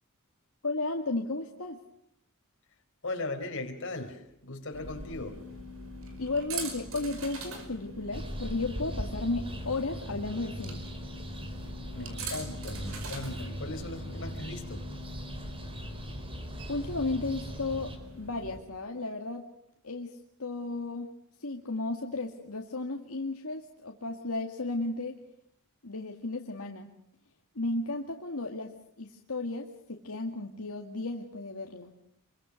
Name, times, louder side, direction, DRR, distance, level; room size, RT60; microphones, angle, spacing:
voice 1, 0.6-1.8 6.2-10.9 16.7-19.5 19.8-25.2 25.8-26.9 27.6-28.7 29.0-31.9, left 2 dB, 80° left, 2.1 m, -34 dB
voice 2, 3.0-5.5 11.9-14.9, left 2 dB, 60° left, 4.3 m, -38 dB
sound 1, 4.7-18.6, right 1 dB, 65° right, 5.3 m, -42 dB
sound 2, 8.1-18.0, right 1 dB, 25° right, 4.0 m, -40 dB
27.5 x 23.5 x 6.5 m
head